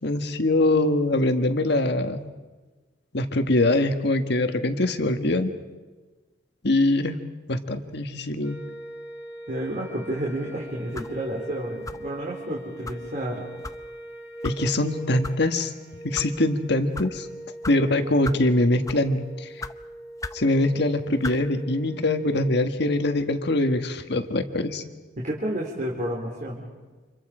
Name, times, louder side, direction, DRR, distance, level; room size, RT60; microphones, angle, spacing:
voice 1, 0.0-2.3 3.1-5.5 6.6-7.2 7.5-8.6 14.4-15.7 16.0-17.3 17.7-19.5 20.3-24.8, left 2 dB, 60° left, 7 dB, 1.7 m, -23 dB
sound 1, 8.4-22.5, right 1 dB, 15° right, 3.0 m, -41 dB
voice 2, 9.5-13.4 25.2-26.6, right 1 dB, 45° right, -3 dB, 3.7 m, -30 dB
sound 2, 10.9-11.2 11.8-12.1 12.8-13.0 13.6-13.8 14.4-14.6 15.2-15.4 16.0-16.3 16.9-17.1 17.6-17.8 18.2-18.5 18.8-19.1 19.6-19.7 20.2-20.4 21.2-21.4, left 2 dB, 20° left, 0.7 m, -35 dB
30.0 x 27.0 x 5.0 m, 1.3 s
head